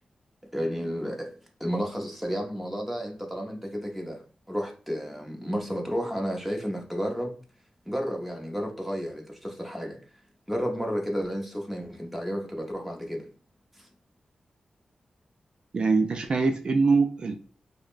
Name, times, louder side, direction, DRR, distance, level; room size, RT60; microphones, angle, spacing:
voice 1, 0.5-1.3 1.6-4.2 4.5-7.3 7.9-10.0 10.5-13.3 13.8-13.9, equal, 5° right, 0.8 m, -32 dB
voice 2, 15.7-17.3, right 4 dB, 50° right, 0.4 m, -23 dB
4.9 x 2.1 x 2.4 m
wide cardioid pair, 130°, 2 cm